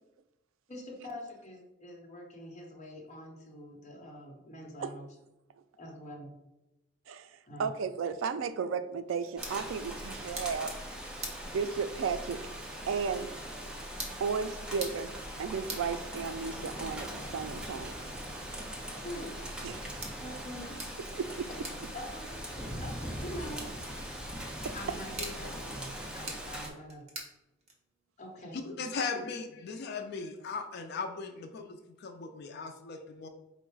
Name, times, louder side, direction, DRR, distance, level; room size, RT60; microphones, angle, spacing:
voice 1, 0.7-5.1 5.8-6.4 7.5-7.7 19.0-19.4 20.2-20.7 21.9-22.4 22.8-23.7 24.0-24.3 24.7-27.0 28.2-28.6 29.1-29.2, left 1 dB, 35° left, -1 dB, 0.9 m, -45 dB
voice 2, 7.6-10.7 11.5-12.4 12.9-13.3 14.2-17.9 19.6-19.9 21.1-21.7 24.6-24.7, right 5 dB, 70° right, 11 dB, 0.3 m, -34 dB
sound 1, 9.0-28.1, right 2 dB, 35° right, 0.9 m, -49 dB
Rain, 9.4-26.7, equal, 5° right, 0.5 m, -41 dB
voice 3, 28.5-33.3, left 4 dB, 55° left, 6 dB, 0.4 m, -38 dB
4.5 x 2.0 x 4.5 m, 0.93 s
head